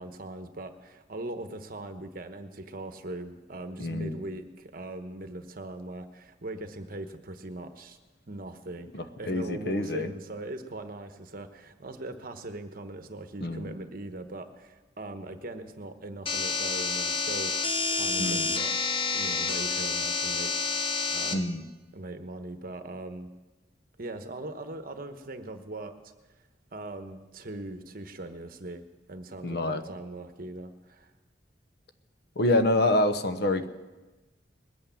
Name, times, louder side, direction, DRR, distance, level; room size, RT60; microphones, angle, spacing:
voice 1, 0.0-8.0 8.3-8.9 9.2-17.5 17.9-18.7 19.1-21.6 21.9-23.3 24.0-25.9 26.7-28.8 29.1-31.1, right 2 dB, 55° right, 8 dB, 1.1 m, -40 dB
voice 2, 3.8-4.2 8.9-10.1 13.4-13.8 18.2-18.5 21.3-21.6 29.4-29.8 32.4-33.7, left 1 dB, 60° left, 9 dB, 1.0 m, -27 dB
sound 1, 16.3-21.3, left 4 dB, 30° left, 1.0 m, -29 dB
20.5 x 8.6 x 7.1 m, 1.2 s
head